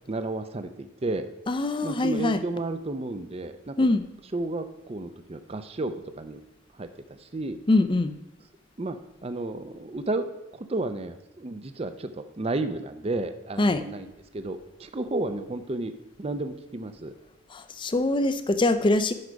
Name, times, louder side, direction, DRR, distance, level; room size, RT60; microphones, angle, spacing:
voice 1, 0.1-1.3 1.8-3.7 4.3-6.5 6.7-7.6 8.8-9.0 9.2-10.3 10.5-14.1 14.3-15.9 16.2-17.1, right 2 dB, 30° right, 10 dB, 0.5 m, -32 dB
voice 2, 1.5-2.4 3.8-4.0 7.7-8.1 13.6-13.8 17.5-19.1, left 2 dB, 25° left, 11 dB, 0.5 m, -23 dB
11.0 x 4.8 x 5.1 m, 0.94 s
head